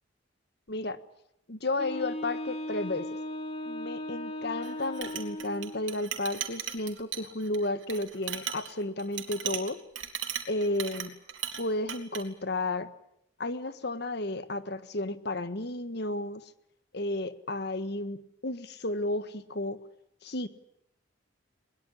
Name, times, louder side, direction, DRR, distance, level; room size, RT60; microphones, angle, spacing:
voice 1, 0.7-1.0 1.5-3.1 3.6-9.8 10.5-11.1 11.6-12.9 13.4-16.5 16.9-19.8 20.2-20.5, left 2 dB, 55° left, 12 dB, 1.5 m, -33 dB
Wind instrument woodwind instrument, 1.8-5.9, left 1 dB, 35° left, 2.8 m, -37 dB
Chink clink, 4.6-11.6 11.9-12.2, right 9 dB, 80° right, 3.6 m, -37 dB
22.0 x 21.0 x 9.9 m, 0.77 s
head